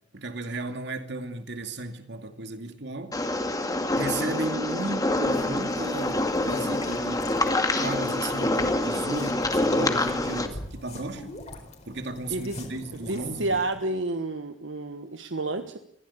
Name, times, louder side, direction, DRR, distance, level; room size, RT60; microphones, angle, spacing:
voice 1, 0.1-3.2 4.0-7.3 7.8-11.4 11.9-13.6, right 2 dB, 65° right, 2.5 m, -34 dB
sound 1, 3.1-10.5, left 2 dB, 20° left, 2.1 m, -26 dB
sound 2, 5.2-13.8, left 1 dB, 40° left, 4.4 m, -42 dB
voice 2, 12.9-15.8, right 2 dB, 80° right, 1.3 m, -30 dB
22.5 x 16.0 x 8.6 m
head